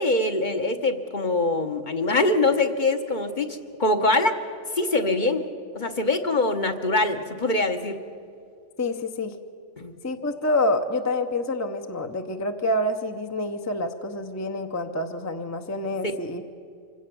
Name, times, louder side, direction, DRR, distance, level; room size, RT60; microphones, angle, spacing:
voice 1, 0.0-4.4 4.7-5.5 5.7-8.0 9.8-9.9, left 2 dB, 40° left, 6 dB, 1.2 m, -23 dB
voice 2, 8.8-9.4 10.0-16.5, left 1 dB, 15° left, 6 dB, 0.7 m, -27 dB
25.5 x 17.0 x 6.9 m, 2.5 s
omnidirectional pair, 1.2 m